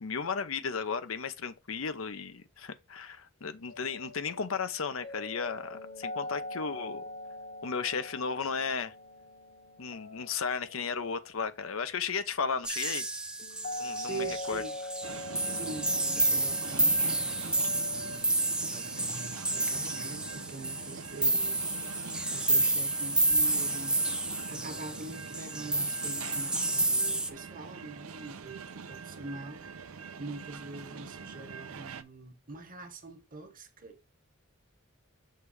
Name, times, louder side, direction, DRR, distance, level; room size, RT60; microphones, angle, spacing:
voice 1, 0.0-7.0 7.6-8.9 9.8-13.1 13.8-14.6, left 5 dB, 75° left, 0.7 m, -34 dB
sound 1, 3.7-18.2, left 1 dB, 45° left, 1.1 m, -43 dB
sound 2, 12.6-27.3, right 2 dB, 5° right, 0.5 m, -30 dB
voice 2, 14.0-14.7 15.5-21.7 22.3-34.0, right 3 dB, 40° right, 1.2 m, -44 dB
sound 3, 15.0-32.0, right 5 dB, 90° right, 0.6 m, -44 dB
6.6 x 3.3 x 4.9 m
head